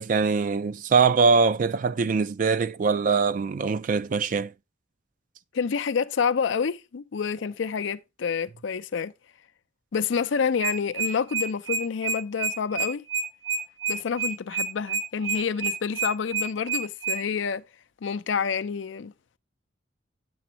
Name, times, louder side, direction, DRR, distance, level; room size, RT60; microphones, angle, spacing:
voice 1, 0.0-4.5, right 5 dB, 40° right, 0.3 m, -22 dB
voice 2, 5.5-9.1 9.9-13.0 13.9-17.6 18.0-19.1, left 6 dB, 70° left, 0.4 m, -28 dB
sound 1, 10.4-17.2, right 4 dB, 80° right, 1.7 m, -28 dB
7.7 x 6.9 x 2.8 m
head